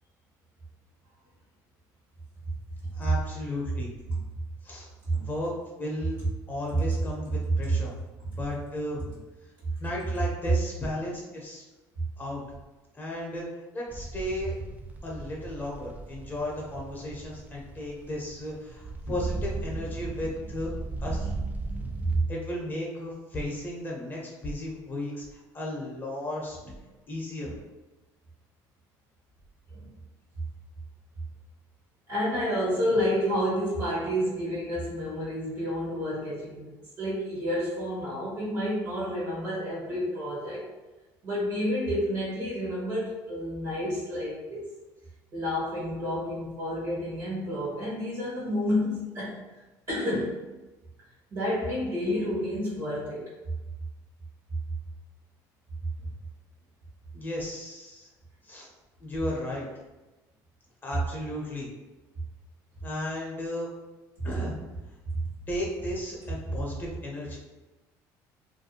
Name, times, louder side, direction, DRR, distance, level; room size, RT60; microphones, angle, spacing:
voice 1, 2.9-3.9 4.6-4.9 5.2-6.2 6.5-7.9 8.4-9.0 9.8-11.6 12.2-12.4 12.9-14.6 15.0-20.7 21.0-21.3 22.3-26.6 27.1-27.5 57.1-58.1 58.4-58.7 59.0-59.7 60.8-61.7 62.8-63.7 64.2-64.6 65.5-67.4, left 1 dB, 25° left, -3 dB, 0.7 m, -34 dB
sound 1, 13.9-22.2, right 3 dB, 20° right, 0.3 m, -37 dB
voice 2, 21.8-22.2 27.5-27.6 29.7-29.9 32.1-40.7 41.2-44.7 45.3-49.4 49.9-50.4 51.3-53.3 65.2-65.3, equal, 50° right, -7 dB, 1.1 m, -30 dB
2.5 x 2.2 x 2.8 m, 1.1 s
supercardioid pair, 100°, 8 cm